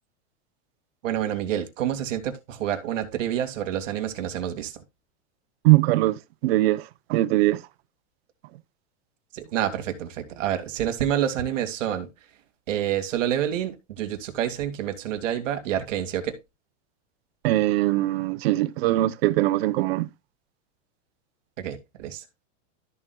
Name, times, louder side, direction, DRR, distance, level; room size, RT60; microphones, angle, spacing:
voice 1, 1.0-4.8 9.3-12.1 12.7-16.4 21.6-22.2, right 10 dB, 90° right, 2.4 m, -28 dB
voice 2, 5.6-7.6 17.4-20.1, right 17 dB, 55° right, 0.8 m, -21 dB
13.5 x 7.4 x 2.3 m
supercardioid pair, 160°, 37 cm